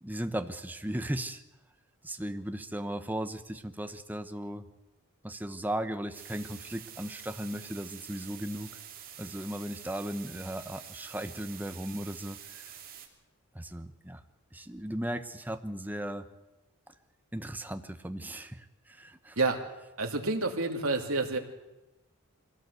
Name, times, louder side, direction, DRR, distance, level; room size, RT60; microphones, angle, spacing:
voice 1, 0.0-1.4 2.0-4.7 5.2-8.7 9.2-12.7 13.5-14.2 14.5-16.3 16.9-17.0 17.3-19.4, right 1 dB, 10° right, 8 dB, 1.0 m, -37 dB
sound 1, 6.1-13.1, right 9 dB, 40° right, 3.0 m, -47 dB
voice 2, 20.0-21.4, right 3 dB, 65° right, 2 dB, 2.7 m, -28 dB
23.5 x 17.0 x 8.1 m, 1.0 s
head